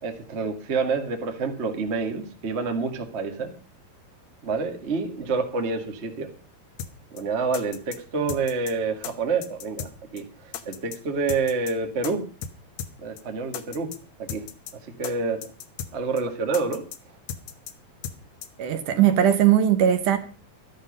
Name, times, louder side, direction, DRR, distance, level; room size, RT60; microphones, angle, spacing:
voice 1, 0.0-3.5 4.4-6.3 7.1-12.2 13.0-13.9 14.2-14.4 15.0-15.4 15.9-16.8, right 4 dB, 35° right, 1.1 m, -28 dB
sound 1, 6.8-6.9 7.2-7.3 7.5-8.0 8.3-8.7 9.0-9.1 9.4-9.9 10.2-10.3 10.5-11.0 11.3-11.7 12.0-12.1 12.4-12.5 12.8-12.9 13.2-13.3 13.5-14.0 14.3-14.7 15.0-15.1 15.4-15.9 16.2-16.3 16.5-17.0 17.3-17.7 18.0-18.2 18.4-18.5, left 8 dB, 65° left, 1.9 m, -35 dB
voice 2, 18.6-20.2, right 10 dB, 70° right, 2.4 m, -19 dB
12.5 x 12.0 x 5.3 m
omnidirectional pair, 4.1 m